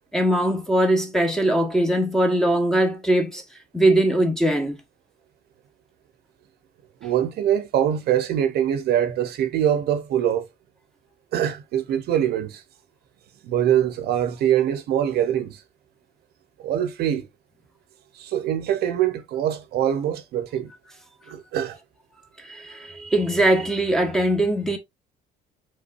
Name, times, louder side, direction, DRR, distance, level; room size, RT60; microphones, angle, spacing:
voice 1, 0.1-3.4 3.7-4.8 22.4-24.8, right 1 dB, 5° left, 1.3 m, -21 dB
voice 2, 7.0-10.5 11.3-12.6 13.4-15.6 16.6-17.3 18.1-20.7 21.3-21.8, right 10 dB, 70° right, 0.9 m, -23 dB
5.4 x 3.8 x 2.6 m
cardioid pair, 110°, 17 cm